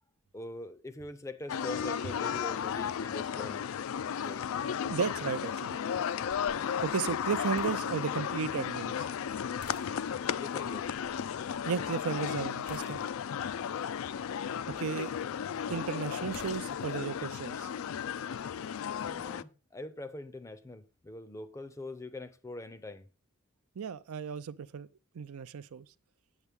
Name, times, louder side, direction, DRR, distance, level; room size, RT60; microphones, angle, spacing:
voice 1, 0.3-3.7 4.0-4.5 9.8-10.9 19.0-23.1, left 2 dB, 15° left, 0.5 m, -43 dB
sound 1, 1.5-19.4, left 8 dB, 65° left, 0.3 m, -34 dB
voice 2, 4.8-5.8 6.8-9.1 11.7-13.0 14.8-15.1 15.7-17.7 23.8-24.9 25.1-25.9, right 6 dB, 75° right, 0.5 m, -34 dB
sound 2, 6.3-17.2, left 4 dB, 85° left, 0.9 m, -57 dB
8.2 x 8.1 x 3.5 m
head